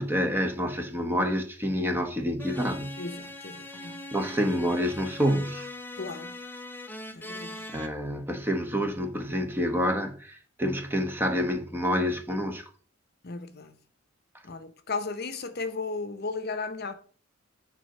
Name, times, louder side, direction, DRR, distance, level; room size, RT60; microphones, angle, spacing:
voice 1, 0.0-3.0 3.8-5.7 7.7-12.7, equal, 10° right, 1.0 m, -28 dB
sound 1, 2.4-7.9, left 2 dB, 10° left, 0.7 m, -41 dB
voice 2, 3.0-4.1 6.0-6.4 7.1-7.6 13.2-13.8 14.4-16.9, left 4 dB, 50° left, 0.8 m, -35 dB
9.8 x 3.8 x 6.5 m
head